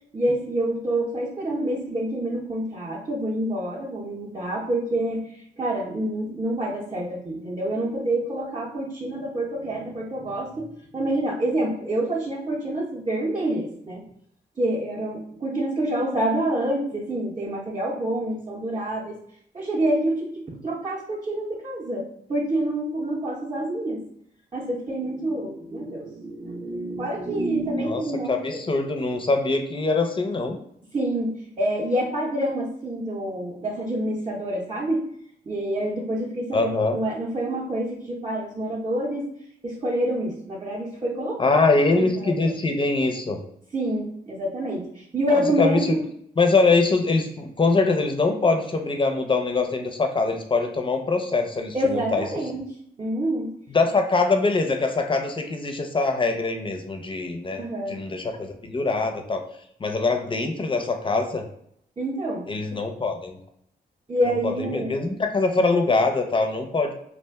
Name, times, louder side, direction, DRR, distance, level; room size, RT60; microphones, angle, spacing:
voice 1, 0.1-10.7 10.9-14.0 14.6-19.2 19.5-24.0 24.5-28.6 30.9-35.0 35.5-39.2 39.6-42.5 43.7-46.0 51.7-52.6 53.0-53.5 57.6-58.0 62.0-62.4 64.1-65.1, right 1 dB, 25° right, -5 dB, 0.7 m, -27 dB
voice 2, 28.3-30.6 36.5-37.0 41.4-43.4 45.3-45.8 46.4-52.3 53.7-57.6 57.9-59.4 59.8-61.4 62.5-63.4 64.3-66.9, left 3 dB, 25° left, 4 dB, 0.5 m, -23 dB
2.4 x 2.1 x 3.4 m, 0.68 s
cardioid pair, 60°, 19 cm